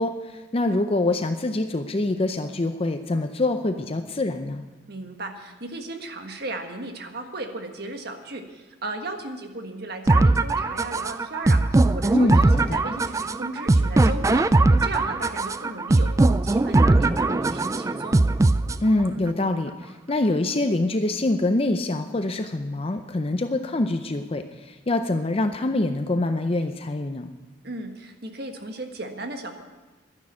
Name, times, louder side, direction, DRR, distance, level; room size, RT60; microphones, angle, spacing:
voice 1, 0.0-4.6 12.1-12.8 18.8-27.3, left 2 dB, 30° left, 8 dB, 0.6 m, -25 dB
voice 2, 4.9-18.2 27.6-29.6, right 2 dB, 60° right, 5 dB, 1.5 m, -35 dB
sound 1, 10.1-19.1, right 2 dB, 15° right, 0.3 m, -20 dB
12.0 x 10.5 x 7.3 m, 1.2 s
head